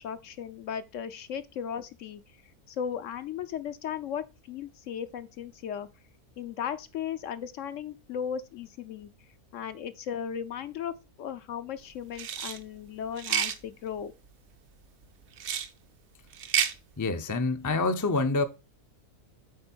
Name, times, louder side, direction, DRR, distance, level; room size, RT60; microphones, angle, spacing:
voice 1, 0.0-2.2 2.7-5.9 6.4-9.1 9.5-10.9 11.2-14.1, left 8 dB, 70° left, 0.9 m, -36 dB
sound 1, 12.1-12.6 13.2-13.6 15.4-15.7 16.3-16.7, right 8 dB, 60° right, 0.9 m, -29 dB
voice 2, 17.0-18.4, left 3 dB, 25° left, 0.4 m, -26 dB
8.6 x 3.8 x 4.4 m
omnidirectional pair, 1.5 m